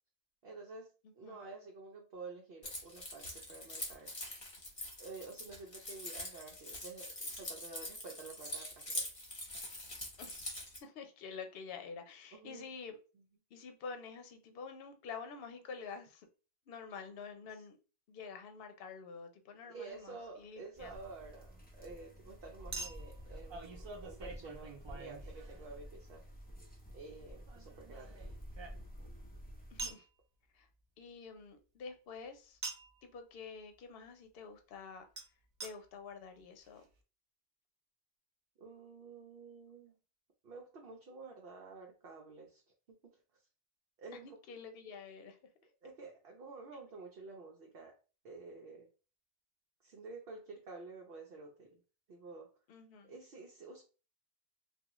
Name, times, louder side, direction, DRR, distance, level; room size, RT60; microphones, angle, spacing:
voice 1, 0.4-4.1 5.0-9.1 12.3-12.7 19.6-26.2 26.9-28.2 38.6-39.9 40.4-42.6 44.0-44.3 45.8-48.0 48.2-48.9 49.8-51.8 52.1-52.5 53.0-53.8, right 3 dB, 70° right, 0 dB, 0.8 m, -50 dB
voice 2, 1.0-1.4 10.2-10.5 10.8-13.0 13.5-16.3 16.7-17.8 18.1-20.9 29.7-30.0 30.5-30.7 31.0-32.6 33.0-35.1 35.6-36.8 44.2-45.4 52.7-53.2, left 5 dB, 70° left, 7 dB, 0.8 m, -48 dB
Keys jangling, 2.6-10.8, left 1 dB, 35° left, 1.0 m, -44 dB
Chink clink, 19.9-20.0 22.7-25.9 27.5-29.1 29.8-30.1 32.6-33.0 35.2-35.3 35.6-35.7 36.4-36.5 36.6-36.7, right 3 dB, 45° right, 0.4 m, -46 dB
sound 1, 20.7-29.9, equal, 10° left, 0.6 m, -51 dB
3.5 x 2.3 x 2.9 m, 0.35 s
omnidirectional pair, 1.1 m